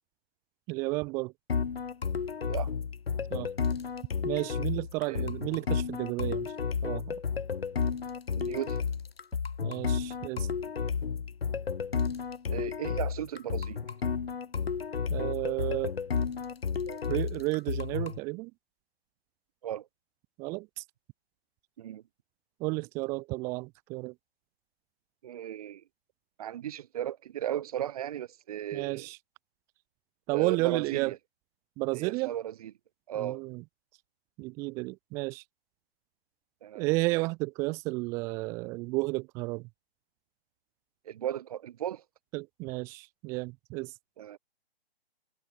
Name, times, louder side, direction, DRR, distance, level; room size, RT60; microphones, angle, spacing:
voice 1, 0.7-1.3 3.3-3.5 4.2-6.5 6.8-7.2 9.6-10.5 15.1-15.9 16.9-18.5 20.4-20.8 22.6-24.1 28.7-29.2 30.3-31.1 31.8-32.3 33.2-33.6 34.4-35.4 36.7-39.7 42.3-43.9, right 25 dB, 10° right, 0.8 m, -32 dB
sound 1, 1.5-18.2, left 6 dB, 65° left, 4.3 m, -32 dB
voice 2, 8.4-8.8 12.5-13.8 19.6-19.9 21.8-22.0 25.2-25.8 26.4-29.1 30.3-31.2 31.9-32.7 33.1-33.4 36.6-36.9 41.1-42.0 44.2-44.4, right 11 dB, 35° right, 5.5 m, -36 dB
hypercardioid pair, 165°, 32 cm